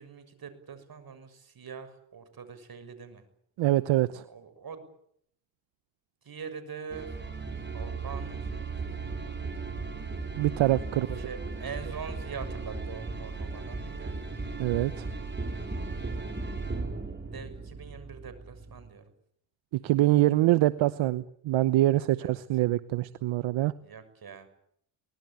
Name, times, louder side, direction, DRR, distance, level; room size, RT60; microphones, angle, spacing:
voice 1, 0.0-3.2 4.2-4.9 6.2-7.1 7.7-9.3 10.9-14.2 17.3-19.0 22.2-22.4 23.8-24.5, right 6 dB, 50° right, 11 dB, 6.7 m, -43 dB
voice 2, 3.6-4.2 10.4-11.2 14.6-15.1 19.7-23.7, right 16 dB, 80° right, 14 dB, 1.0 m, -25 dB
sound 1, 6.9-18.9, right 3 dB, 25° right, 5.7 m, -36 dB
24.0 x 19.5 x 9.2 m, 0.69 s
cardioid pair, 75°, 46 cm